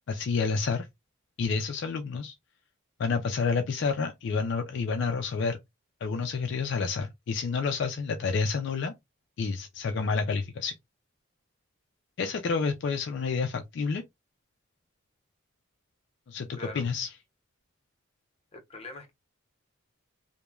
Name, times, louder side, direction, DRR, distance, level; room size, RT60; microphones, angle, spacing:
voice 1, 0.1-0.9 1.4-2.3 3.0-5.6 6.0-8.9 9.4-10.7 12.2-14.0 16.3-17.1, left 5 dB, 55° left, 0.3 m, -29 dB
voice 2, 18.5-19.1, left 2 dB, 30° left, 0.7 m, -42 dB
3.0 x 2.1 x 2.3 m
head